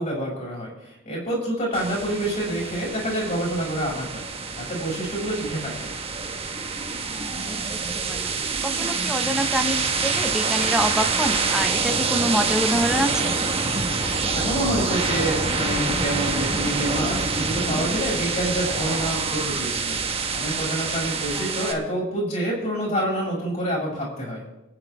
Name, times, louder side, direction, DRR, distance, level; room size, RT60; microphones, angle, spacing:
voice 1, 0.0-4.2 4.5-5.9 14.3-24.4, right 1 dB, 40° left, -3 dB, 7.0 m, -27 dB
sound 1, 1.7-21.7, right 4 dB, 30° right, 1.5 m, -26 dB
voice 2, 7.4-8.3 8.6-13.3 21.3-21.5, equal, 5° right, 4 dB, 0.9 m, -26 dB
28.0 x 9.6 x 3.6 m, 0.96 s
head